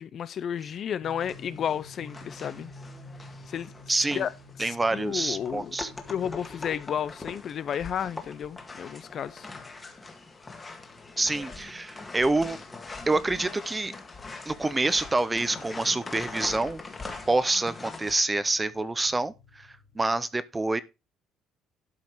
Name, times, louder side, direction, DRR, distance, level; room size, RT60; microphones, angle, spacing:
voice 1, 0.0-2.7 3.5-3.7 4.1-4.3 4.6-5.7 6.1-9.5, left 8 dB, 45° left, 0.6 m, -32 dB
sound 1, 1.0-20.2, left 1 dB, 85° left, 3.3 m, -52 dB
sound 2, 1.2-18.1, left 3 dB, 20° left, 1.8 m, -43 dB
voice 2, 3.9-4.3 4.6-5.9 11.2-12.6 13.1-13.9 14.5-16.8 17.3-19.7 20.0-20.8, right 2 dB, 15° right, 0.7 m, -27 dB
12.0 x 5.5 x 4.6 m
cardioid pair, 145°, 0 cm